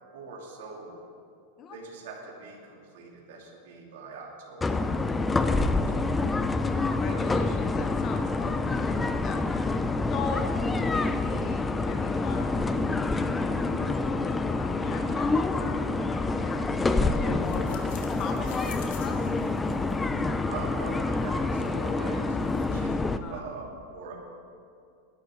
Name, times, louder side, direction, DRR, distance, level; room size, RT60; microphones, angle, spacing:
voice 1, 0.1-1.0 1.7-5.6 5.9-6.3 20.5-24.1, right 4 dB, 75° right, -2 dB, 2.8 m, -43 dB
sound 1, 4.6-23.2, left 3 dB, 10° left, 0.4 m, -27 dB
voice 2, 6.6-9.6 10.1-12.6 13.1-19.3 20.0-20.1 23.2-23.4, left 5 dB, 25° left, 4 dB, 0.9 m, -40 dB
sound 2, 17.4-22.9, left 7 dB, 60° left, 2.0 m, -51 dB
19.5 x 11.5 x 3.8 m, 2.4 s
supercardioid pair, 165°, 0 cm